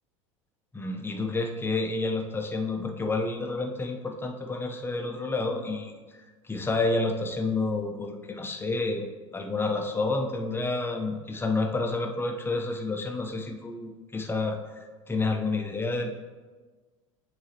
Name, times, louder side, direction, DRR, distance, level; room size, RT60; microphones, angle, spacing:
voice 1, 0.7-6.0 6.4-14.6 15.1-16.1, left 3 dB, 15° left, 2 dB, 0.8 m, -29 dB
9.6 x 3.9 x 2.9 m, 1.4 s
figure-of-eight pair, 75°, 17 cm